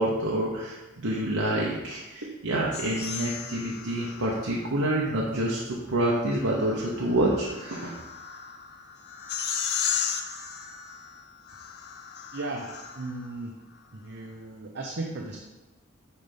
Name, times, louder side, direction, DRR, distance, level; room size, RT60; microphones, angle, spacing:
voice 1, 0.0-8.1, right 1 dB, 80° right, -4 dB, 1.0 m, -27 dB
sound 1, 2.7-4.7 6.1-13.3, left 7 dB, 50° left, 0.7 m, -35 dB
voice 2, 12.3-13.5 13.9-15.4, right 2 dB, 55° right, 0 dB, 0.8 m, -36 dB
9.5 x 3.4 x 5.3 m, 1.1 s
head